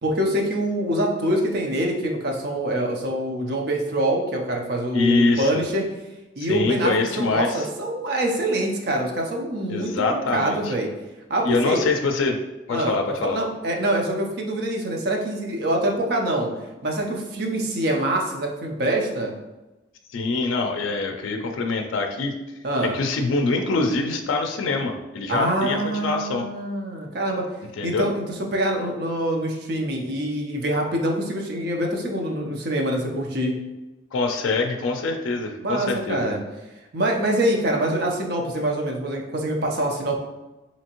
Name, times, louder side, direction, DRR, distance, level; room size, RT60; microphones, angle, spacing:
voice 1, 0.0-5.8 6.4-10.9 11.3-11.8 12.7-13.0 13.2-16.5 16.8-19.3 22.6-22.9 25.3-27.4 27.8-28.2 28.5-33.5 35.6-36.4 36.9-40.2, right 1 dB, 55° right, 1 dB, 0.6 m, -25 dB
voice 2, 4.9-5.6 6.4-7.7 9.7-10.7 11.4-12.4 12.7-13.4 20.1-22.3 22.8-26.5 27.8-28.1 34.1-36.3, left 3 dB, 85° left, 4 dB, 0.4 m, -24 dB
3.4 x 2.8 x 2.9 m, 1.1 s
head